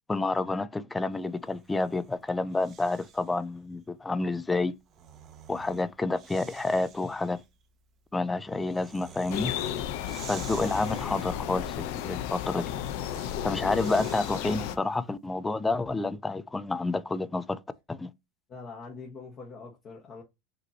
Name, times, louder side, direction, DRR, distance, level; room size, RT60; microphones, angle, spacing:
voice 1, 0.1-4.7 5.5-7.4 8.1-9.5 10.3-12.7 13.4-17.6 17.9-18.1, left 3 dB, 10° left, 0.4 m, -29 dB
Breathing, 1.4-3.4 4.6-14.9, right 8 dB, 35° right, 0.7 m, -50 dB
sound 1, 9.3-14.8, left 10 dB, 65° left, 0.5 m, -33 dB
voice 2, 18.5-20.2, left 4 dB, 35° left, 1.2 m, -43 dB
5.1 x 3.1 x 2.8 m
supercardioid pair, 125°, 0 cm